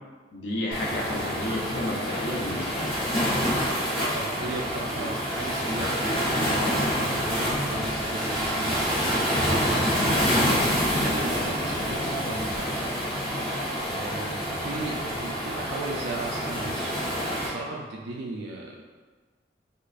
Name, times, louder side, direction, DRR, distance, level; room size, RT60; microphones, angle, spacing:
voice 1, 0.3-2.9, left 1 dB, 85° left, -3 dB, 0.7 m, -31 dB
Waves surf, 0.7-17.5, equal, 30° left, 0.9 m, -27 dB
voice 2, 4.1-10.5 11.0-13.0 13.8-16.9 17.4-18.8, right 2 dB, 70° right, -2 dB, 0.4 m, -37 dB
sound 1, 7.2-8.8 9.1-9.3 9.5-12.6 14.0-14.6 14.9-15.2, left 1 dB, 10° right, 0.9 m, -38 dB
4.6 x 2.4 x 2.4 m, 1.4 s
head